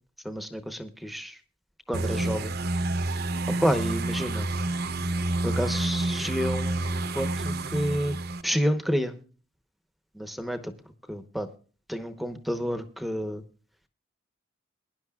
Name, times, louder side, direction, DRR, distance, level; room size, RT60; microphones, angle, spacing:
voice 1, 0.2-1.4 1.9-2.5 3.5-4.5 5.4-8.1 8.4-9.1 10.1-10.7 11.1-11.5 11.9-13.4, equal, ahead, 9 dB, 0.9 m, -29 dB
sound 1, 1.9-8.4, right 2 dB, 50° right, 0.8 m, -29 dB
22.0 x 11.0 x 2.4 m, 0.39 s
head